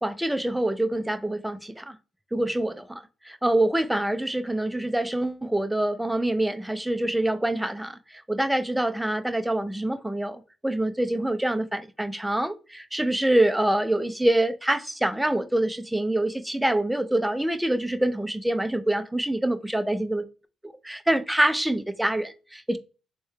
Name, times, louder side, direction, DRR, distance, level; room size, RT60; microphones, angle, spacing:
voice 1, 0.0-2.0 2.3-20.3 20.6-22.8, right 1 dB, 5° right, 0.4 m, -25 dB
3.4 x 2.2 x 3.0 m
cardioid pair, 90°, 0 cm